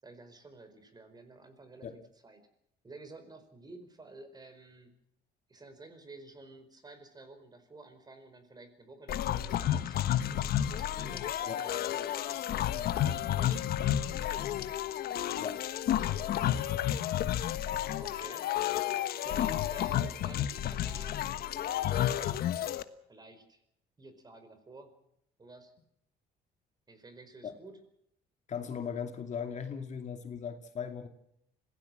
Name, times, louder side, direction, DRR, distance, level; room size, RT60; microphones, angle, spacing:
voice 1, 0.0-2.5 2.8-4.9 5.5-12.7 13.3-13.6 18.0-18.8 19.2-22.6 23.1-23.6 24.0-25.0 25.4-25.7 26.9-27.8, right 2 dB, 25° right, 4.9 m, -52 dB
sound 1, 9.1-22.8, left 11 dB, 65° left, 1.3 m, -31 dB
voice 2, 28.5-31.1, left 7 dB, 45° left, 2.5 m, -38 dB
25.5 x 17.0 x 7.5 m
cardioid pair, 110°, 17 cm